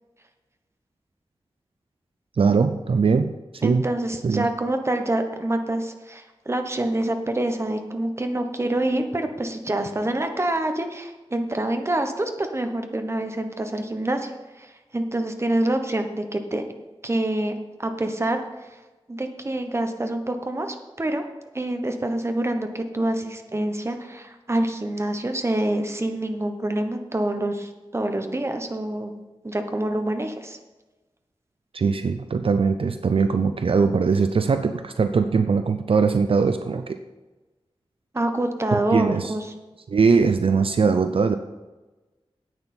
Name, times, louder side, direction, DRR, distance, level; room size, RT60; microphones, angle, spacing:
voice 1, 2.4-3.8 4.2-4.5 31.7-37.0 38.7-39.3 39.9-41.3, right 5 dB, 65° right, 9 dB, 0.5 m, -21 dB
voice 2, 3.6-14.3 14.6-16.6 17.0-17.5 17.8-18.4 18.7-18.8 19.1-21.2 21.5-29.1 29.4-30.6 38.1-39.4, right 1 dB, 25° right, 6 dB, 1.1 m, -26 dB
10.5 x 8.8 x 4.4 m, 1.2 s
wide cardioid pair, 100°, 10 cm